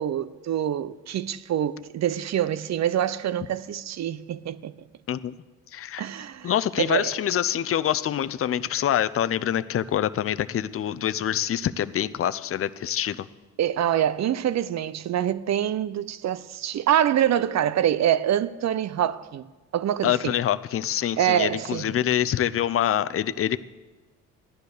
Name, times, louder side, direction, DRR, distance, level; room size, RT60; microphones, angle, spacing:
voice 1, 0.0-4.9 6.0-6.5 6.8-7.1 13.6-19.4 19.7-20.3 21.2-22.0, right 10 dB, 55° right, 0.7 m, -25 dB
voice 2, 5.7-6.0 6.4-13.3 20.0-23.6, left 10 dB, 40° left, 0.6 m, -25 dB
15.0 x 10.5 x 6.6 m
supercardioid pair, 70°, 33 cm